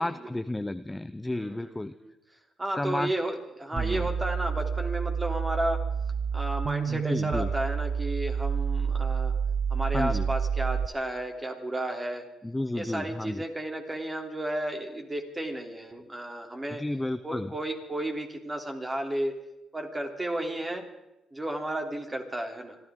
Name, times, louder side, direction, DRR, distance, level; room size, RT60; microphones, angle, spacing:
voice 1, 0.0-1.9 2.8-3.1 3.7-4.0 6.9-7.5 9.9-10.3 12.4-13.4 16.8-17.5, left 1 dB, 10° left, 12 dB, 0.5 m, -32 dB
voice 2, 1.3-2.1 2.6-5.9 6.3-9.3 9.7-12.3 12.7-16.8 17.2-19.4 19.7-20.9 21.3-22.8, right 1 dB, 20° right, 3 dB, 3.1 m, -33 dB
sound 1, 3.8-10.9, right 6 dB, 55° right, 0.5 m, -29 dB
26.5 x 13.5 x 3.7 m, 0.93 s
cardioid pair, 90°, 0 cm